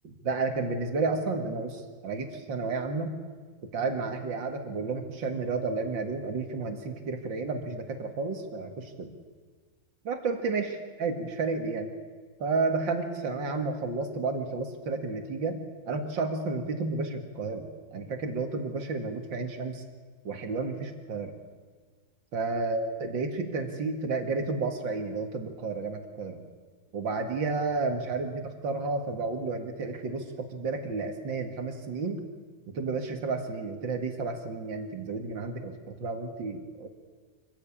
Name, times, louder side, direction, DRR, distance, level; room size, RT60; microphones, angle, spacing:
voice 1, 0.2-3.1 3.6-9.1 10.0-11.9 12.4-15.6 15.9-19.8 20.2-21.3 22.3-26.4 26.9-32.2 32.7-36.9, right 3 dB, 85° right, 5 dB, 2.7 m, -31 dB
24.5 x 15.5 x 8.7 m, 1.5 s
omnidirectional pair, 2.0 m